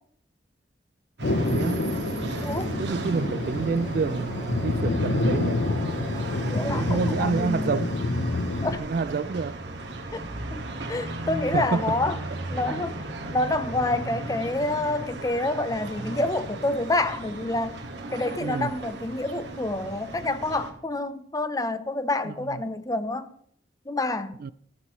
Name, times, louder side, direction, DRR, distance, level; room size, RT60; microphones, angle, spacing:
Thunder, 1.2-8.8, left 2 dB, 85° left, 0.8 m, -28 dB
sound 1, 1.2-20.7, right 2 dB, 75° right, 2.0 m, -35 dB
voice 1, 1.4-1.9 2.8-5.6 6.6-7.9 8.8-9.6 11.5-11.9 18.4-18.7 22.3-22.6 24.4-24.5, right 4 dB, 55° right, 0.4 m, -28 dB
voice 2, 6.4-7.8 8.6-8.8 10.1-12.2 12.5-13.0 13.3-17.8 18.1-23.3 23.9-24.4, left 2 dB, 20° left, 0.7 m, -28 dB
13.0 x 12.0 x 3.1 m
head